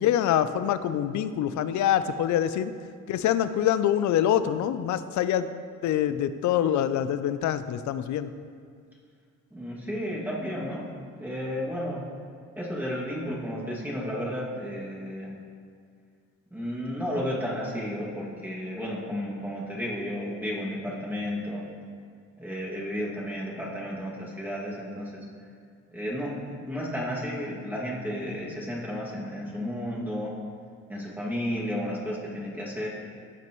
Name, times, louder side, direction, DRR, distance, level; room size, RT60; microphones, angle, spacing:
voice 1, 0.0-2.7 3.1-5.5 5.8-8.3, left 10 dB, 70° left, 13 dB, 0.5 m, -25 dB
voice 2, 9.5-10.9 11.2-12.0 12.6-15.3 16.5-21.6 22.4-25.3 25.9-26.3 26.7-30.3 30.9-32.9, equal, 5° right, -6 dB, 2.1 m, -32 dB
14.5 x 5.9 x 3.0 m, 2.1 s
cardioid pair, 90°, 30 cm